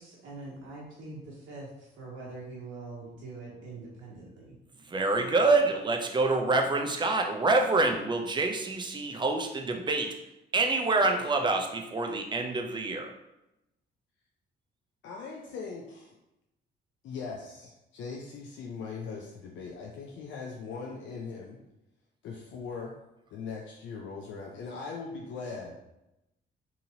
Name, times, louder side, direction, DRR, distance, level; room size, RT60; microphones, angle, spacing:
voice 1, 0.0-4.6, right 3 dB, 75° right, -5 dB, 0.8 m, -44 dB
voice 2, 4.9-10.1 10.5-13.1, right 3 dB, 25° right, 3 dB, 0.5 m, -26 dB
voice 3, 15.0-16.1 17.0-21.6 22.2-22.9 23.3-25.8, left 4 dB, 75° left, -1 dB, 0.5 m, -40 dB
2.8 x 2.8 x 2.7 m, 0.90 s
cardioid pair, 90°, 20 cm